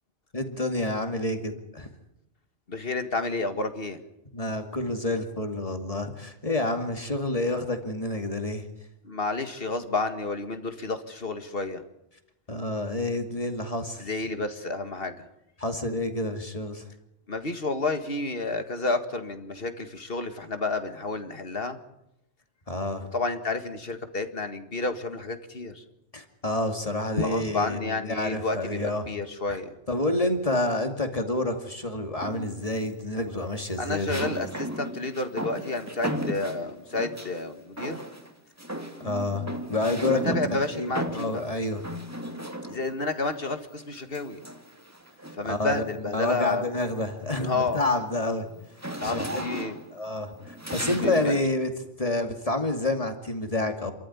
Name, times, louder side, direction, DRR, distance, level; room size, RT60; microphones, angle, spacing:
voice 1, 0.3-1.9 4.3-8.7 12.5-14.1 15.6-16.9 22.7-23.1 26.1-29.1 29.5-29.6 29.9-34.3 39.0-41.8 45.4-45.8 46.1-48.5 49.0-49.4 49.9-51.7 52.0-53.9, left 2 dB, 30° left, 6 dB, 2.5 m, -28 dB
voice 2, 2.7-4.0 9.0-11.8 14.0-15.3 17.3-21.8 23.1-25.8 27.2-29.7 33.8-38.0 40.1-41.4 42.7-44.4 45.4-46.7 47.4-47.8 49.0-49.8 51.0-51.4, left 3 dB, 55° left, 8 dB, 2.0 m, -30 dB
sound 1, 32.2-32.7 34.1-37.4 37.8-38.3 38.6-43.0 44.1-45.5 46.1-46.3 46.7-51.4, right 1 dB, 15° right, 2.2 m, -35 dB
28.0 x 14.0 x 9.8 m, 0.86 s
omnidirectional pair, 1.2 m